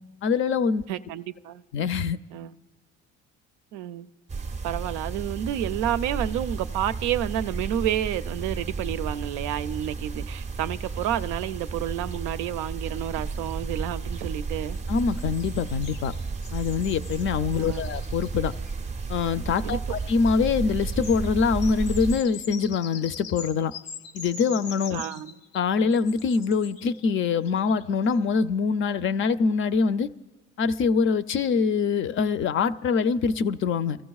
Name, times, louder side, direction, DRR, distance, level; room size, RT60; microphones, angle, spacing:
voice 1, 0.2-0.8 1.7-2.2 14.9-16.1 16.5-18.5 19.1-23.7 24.1-25.0 25.5-30.1 30.6-34.0, left 5 dB, 40° left, 0.5 m, -24 dB
voice 2, 0.9-1.6 2.3-2.5 3.7-4.1 4.6-14.8 17.6-17.8 19.6-19.8 24.9-25.3, right 11 dB, 80° right, 0.5 m, -30 dB
sound 1, 4.3-22.2, right 4 dB, 25° right, 0.5 m, -33 dB
sound 2, 10.7-11.8 12.1-12.2 12.4-12.5 14.7-19.3 19.9-28.2, left 7 dB, 85° left, 0.9 m, -44 dB
29.5 x 14.5 x 2.3 m
cardioid pair, 110°, 30 cm